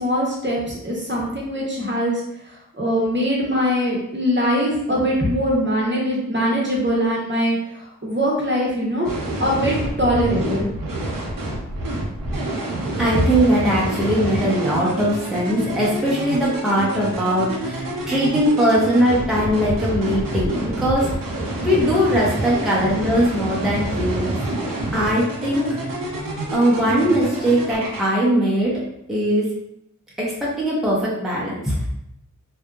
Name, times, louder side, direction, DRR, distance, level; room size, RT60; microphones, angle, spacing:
voice 1, 0.0-9.1 9.4-10.7, equal, 35° right, -4 dB, 0.8 m, -22 dB
sound 1, 9.0-28.0, right 1 dB, 85° right, 0.6 m, -27 dB
voice 2, 13.0-21.1 21.6-24.4 24.9-25.8 26.5-28.8 29.1-29.5 30.2-31.8, equal, ahead, -6 dB, 0.7 m, -20 dB
2.7 x 2.4 x 2.3 m, 0.80 s
wide cardioid pair, 55°, 33 cm